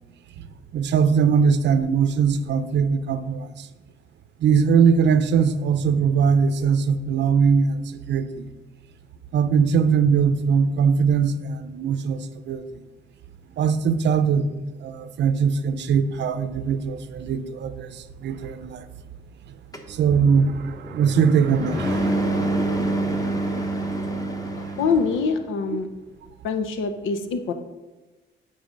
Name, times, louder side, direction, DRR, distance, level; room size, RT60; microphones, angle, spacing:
voice 1, 0.7-3.4 4.4-7.8 8.1-8.3 9.3-12.2 12.5-12.6 13.6-14.5 14.8-17.9 18.2-18.8 20.0-20.5 20.9-22.1, right 6 dB, 65° right, 0.6 m, -20 dB
sound 1, 19.7-25.3, right 1 dB, 15° left, 1.1 m, -27 dB
voice 2, 24.0-24.5 24.8-25.9 26.4-27.5, left 5 dB, 80° left, 0.8 m, -25 dB
7.3 x 5.1 x 5.2 m
cardioid pair, 90°, 20 cm